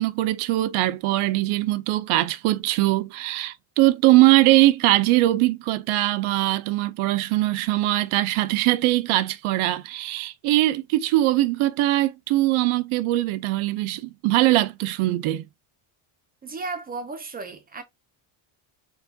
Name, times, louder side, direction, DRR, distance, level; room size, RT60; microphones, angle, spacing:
voice 1, 0.0-15.4, right 17 dB, 75° right, 0.6 m, -21 dB
voice 2, 16.4-17.8, right 3 dB, 20° right, 0.5 m, -34 dB
4.6 x 2.3 x 2.7 m
cardioid pair, 155°, 50 cm